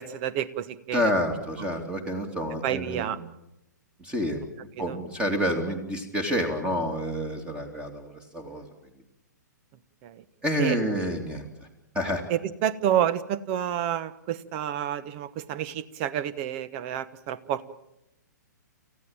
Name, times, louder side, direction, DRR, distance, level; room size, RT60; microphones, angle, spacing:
voice 1, 0.0-1.1 2.6-3.2 4.8-5.0 10.0-10.2 10.6-10.8 12.3-17.7, right 10 dB, 35° right, 17 dB, 1.2 m, -29 dB
voice 2, 0.9-3.2 4.0-4.5 4.8-8.6 10.4-11.4 11.9-12.2, equal, 10° right, 6 dB, 2.8 m, -28 dB
29.0 x 15.5 x 8.9 m, 0.88 s
figure-of-eight pair, 120°, 10 cm